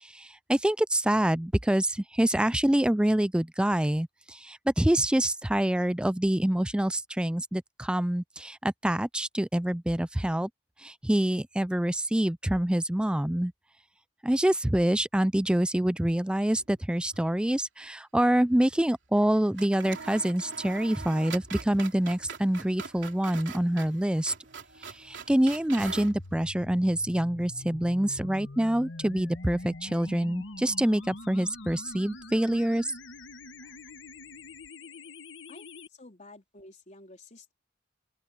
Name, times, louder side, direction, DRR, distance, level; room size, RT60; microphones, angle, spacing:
voice 1, 0.0-10.5 10.8-13.5 14.2-24.3 24.8-32.9, right 1 dB, 5° right, 0.4 m, -26 dB
sound 1, 16.5-17.3 17.5-17.6 19.1-19.3 19.6-26.2, right 6 dB, 70° right, 3.3 m, -43 dB
sound 2, 18.7-34.7, equal, 50° right, 7.8 m, -67 dB
sound 3, 25.9-35.9, left 2 dB, 75° left, 1.5 m, -44 dB
voice 2, 34.8-35.1 35.5-37.5, left 2 dB, 40° left, 4.0 m, -52 dB
open air
head